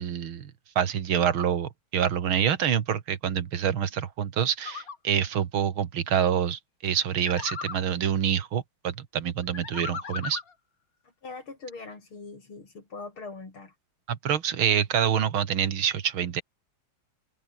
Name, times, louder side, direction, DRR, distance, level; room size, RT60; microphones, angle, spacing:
voice 1, 0.0-10.4 14.1-16.4, right 8 dB, 80° right, 2.4 m, -26 dB
sound 1, 4.6-5.0 7.3-7.9 9.5-10.5, left 5 dB, 45° left, 2.3 m, -36 dB
voice 2, 11.2-13.7, left 3 dB, 85° left, 5.8 m, -42 dB
omnidirectional pair, 2.2 m